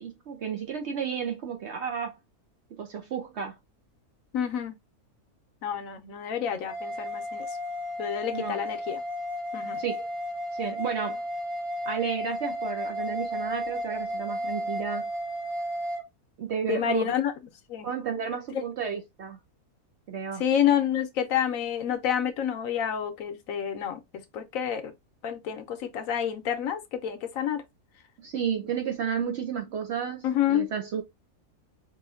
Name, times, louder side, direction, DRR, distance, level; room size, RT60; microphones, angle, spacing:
voice 1, 0.0-2.2 2.8-3.6 8.3-8.6 9.8-10.1 10.6-11.2 11.9-15.1 16.4-17.1 17.8-19.4 20.1-20.4 28.2-31.0, right 7 dB, 65° right, 0.7 m, -32 dB
voice 2, 4.3-4.7 5.6-7.5 8.0-9.0 9.5-9.8 16.7-17.3 17.7-17.9 18.5-18.6 20.4-24.0 24.3-24.9 25.2-27.6 30.2-30.7, left 9 dB, 70° left, 1.0 m, -28 dB
sound 1, 6.7-16.0, equal, 80° right, 1.7 m, -33 dB
4.8 x 2.5 x 2.4 m
omnidirectional pair, 1.6 m